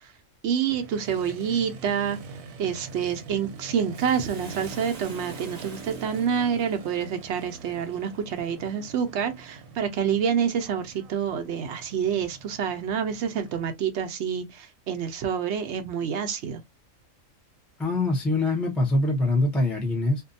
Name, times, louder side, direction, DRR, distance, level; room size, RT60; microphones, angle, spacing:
voice 1, 0.4-2.2 2.6-16.6, right 7 dB, 65° right, 0.8 m, -27 dB
Motorcycle, 0.7-13.7, right 4 dB, 90° right, 1.0 m, -44 dB
Bathtub (filling or washing), 3.9-8.5 9.0-9.1, right 3 dB, 35° right, 0.8 m, -47 dB
voice 2, 17.8-20.2, left 2 dB, ahead, 0.4 m, -24 dB
2.6 x 2.2 x 2.5 m
omnidirectional pair, 1.4 m